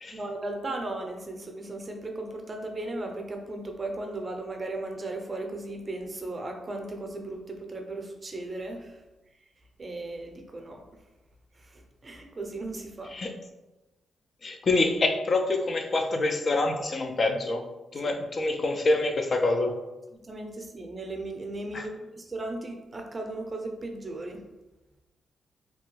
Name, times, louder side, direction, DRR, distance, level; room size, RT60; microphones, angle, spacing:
voice 1, 0.1-9.0 9.8-10.8 11.6-13.1 18.0-18.1 20.1-24.4, right 2 dB, 35° right, 3 dB, 0.5 m, -36 dB
voice 2, 14.4-19.8 21.7-21.9, left 2 dB, 50° left, 5 dB, 0.3 m, -26 dB
2.8 x 2.2 x 3.0 m, 1.1 s
cardioid pair, 60°, 0 cm